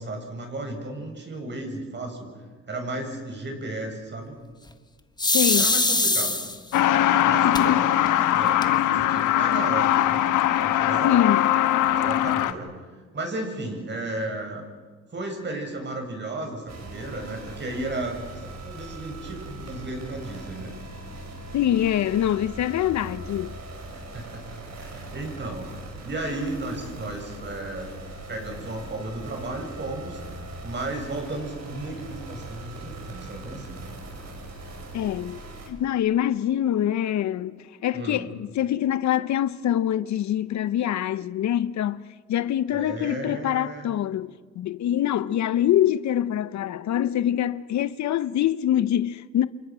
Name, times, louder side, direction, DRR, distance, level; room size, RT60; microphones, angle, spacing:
voice 1, 0.0-2.3 2.7-4.4 5.6-6.4 7.2-7.8 8.3-8.6 8.9-10.2 10.6-11.2 11.9-12.7 13.1-14.7 15.1-20.7 24.1-25.7 26.0-27.9 28.3-30.2 30.6-33.9 37.9-38.3 42.7-43.9, right 2 dB, 35° right, 7.0 m, -34 dB
sound 1, 5.2-6.8 7.5-7.6 8.1-8.2 8.4-9.0, left 2 dB, 15° left, 1.5 m, -22 dB
voice 2, 5.3-5.7 7.4-7.9 11.0-11.5 21.5-23.5 34.9-35.4 35.7-49.5, left 11 dB, 65° left, 0.8 m, -24 dB
Truck, 6.7-12.5, left 12 dB, 85° left, 1.2 m, -21 dB
sound 2, 16.7-35.7, right 2 dB, 60° right, 6.2 m, -40 dB
29.0 x 27.5 x 6.2 m
cardioid pair, 90°, 30 cm